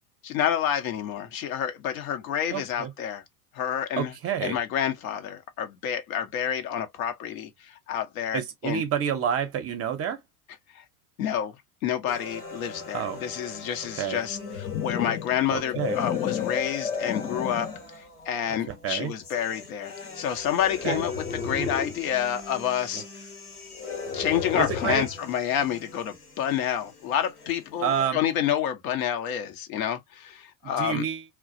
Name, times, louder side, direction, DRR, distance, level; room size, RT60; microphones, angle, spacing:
voice 1, 0.2-3.2 3.5-4.1 4.4-8.8 10.7-10.8 11.2-11.5 11.8-17.7 18.3-23.0 24.1-31.0, left 9 dB, 65° left, 0.8 m, -29 dB
voice 2, 2.5-2.9 4.0-4.6 8.3-10.2 12.9-13.2 14.0-14.2 15.5-16.0 18.7-19.1 20.8-21.0 21.5-21.7 22.9-23.0 24.6-25.1 27.8-28.2 30.8-31.2, right 8 dB, 30° right, 0.6 m, -29 dB
sound 1, 12.1-28.1, left 3 dB, 90° left, 1.0 m, -43 dB
sound 2, 14.2-17.9 18.5-18.8 20.5-22.1 23.7-25.2, left 7 dB, 15° left, 0.4 m, -32 dB
2.3 x 2.1 x 2.5 m
hypercardioid pair, 85°, 45 cm